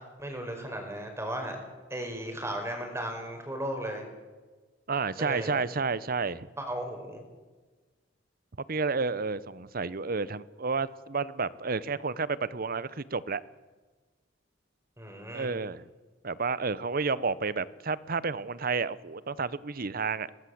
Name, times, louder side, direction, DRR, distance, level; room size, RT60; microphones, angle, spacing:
voice 1, 0.2-1.6 1.9-4.0 5.2-5.6 6.6-7.2 15.0-15.5, right 1 dB, 15° right, 4 dB, 5.2 m, -35 dB
voice 2, 4.9-6.5 8.7-13.4 15.3-15.9 16.2-20.3, right 4 dB, 50° right, 18 dB, 0.9 m, -31 dB
22.5 x 19.5 x 7.9 m, 1.3 s
head